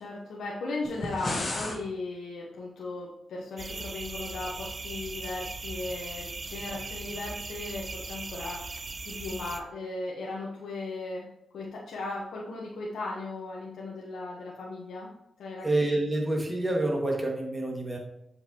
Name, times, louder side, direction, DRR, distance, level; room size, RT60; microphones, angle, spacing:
voice 1, 0.0-11.2 11.5-15.1 15.4-15.6, left 2 dB, 90° left, -3 dB, 1.0 m, -37 dB
sound 1, 0.8-1.8, left 2 dB, 50° left, 1.3 m, -32 dB
sound 2, 3.6-9.6, right 3 dB, 45° right, 0.6 m, -39 dB
voice 2, 15.6-18.0, right 2 dB, 15° right, 0 dB, 1.9 m, -27 dB
7.2 x 5.2 x 2.9 m, 0.84 s
cardioid pair, 65°, 0 cm